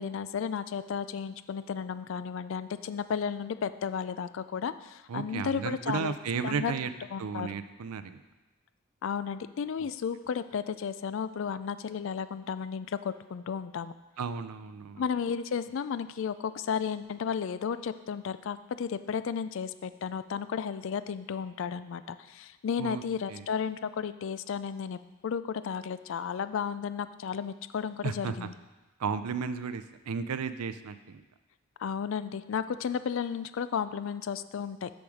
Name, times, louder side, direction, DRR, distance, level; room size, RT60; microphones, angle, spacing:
voice 1, 0.0-6.1 6.4-6.7 7.1-7.5 9.0-13.9 15.0-28.5 31.8-34.9, left 7 dB, 60° left, 13 dB, 0.3 m, -33 dB
voice 2, 5.1-6.9 7.2-8.2 14.2-15.0 22.8-23.0 23.3-23.5 28.0-28.5 29.0-31.2, right 6 dB, 90° right, 11 dB, 0.5 m, -34 dB
6.9 x 6.3 x 5.0 m, 1.1 s
head